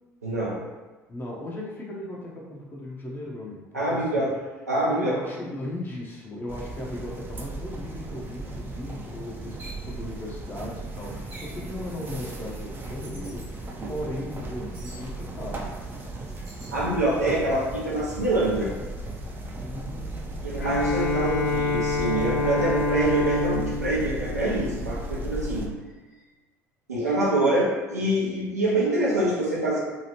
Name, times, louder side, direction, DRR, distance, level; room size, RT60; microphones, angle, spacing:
voice 1, 0.2-0.6 3.7-4.3 4.7-5.1 16.7-18.7 20.4-25.7 26.9-29.8, right 1 dB, 85° right, -6 dB, 0.6 m, -25 dB
voice 2, 1.1-4.2 4.9-15.8 19.6-20.6, left 1 dB, 25° left, -4 dB, 0.7 m, -37 dB
sound 1, 6.5-25.7, right 1 dB, 25° right, 0.5 m, -36 dB
sound 2, 9.6-9.8 11.3-11.6 13.0-13.5 14.7-15.0 16.4-16.8, right 1 dB, 65° right, 1.0 m, -45 dB
Bowed string instrument, 20.6-25.3, left 3 dB, 90° left, 0.4 m, -27 dB
2.9 x 2.4 x 2.9 m, 1.2 s
figure-of-eight pair, 60°, 8 cm